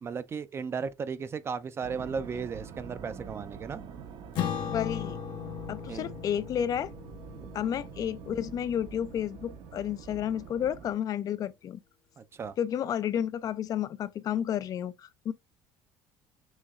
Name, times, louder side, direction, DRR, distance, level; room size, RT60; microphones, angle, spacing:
voice 1, 0.0-3.8 5.9-6.1 12.2-12.5, right 5 dB, 30° right, 0.4 m, -35 dB
sound 1, 1.8-10.9, right 7 dB, 60° right, 0.8 m, -46 dB
Acoustic guitar / Strum, 4.4-9.1, left 9 dB, 65° left, 1.0 m, -37 dB
voice 2, 4.7-5.2 5.7-6.9 7.5-11.8 12.6-15.3, left 9 dB, 45° left, 0.4 m, -31 dB
6.3 x 3.0 x 2.4 m
cardioid pair, 120°, 9 cm